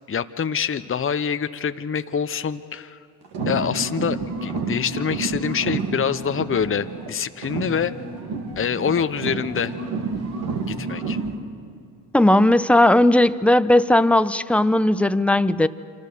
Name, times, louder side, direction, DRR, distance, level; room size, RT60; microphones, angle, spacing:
voice 1, 0.1-3.0 3.5-7.9 8.6-9.7 10.7-11.2, left 7 dB, 30° left, 10 dB, 1.0 m, -25 dB
sound 1, 3.2-7.1 7.4-11.4, right 4 dB, 65° right, 3.2 m, -29 dB
voice 2, 12.1-15.7, left 1 dB, 5° left, 13 dB, 0.9 m, -17 dB
27.5 x 26.0 x 6.9 m, 2.3 s
hypercardioid pair, 55°, 43 cm